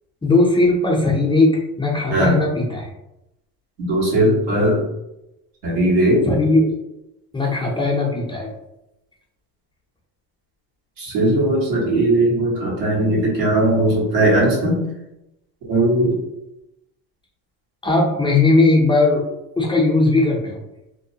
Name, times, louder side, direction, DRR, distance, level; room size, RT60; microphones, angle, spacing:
voice 1, 0.2-2.9 6.2-6.7 7.3-8.5 17.8-20.6, left 2 dB, 15° left, -2 dB, 0.4 m, -18 dB
voice 2, 3.8-4.8 5.6-6.2 11.0-14.8 15.7-16.2, right 1 dB, 80° right, -4 dB, 1.3 m, -18 dB
2.6 x 2.1 x 2.7 m, 0.90 s
supercardioid pair, 100°, 38 cm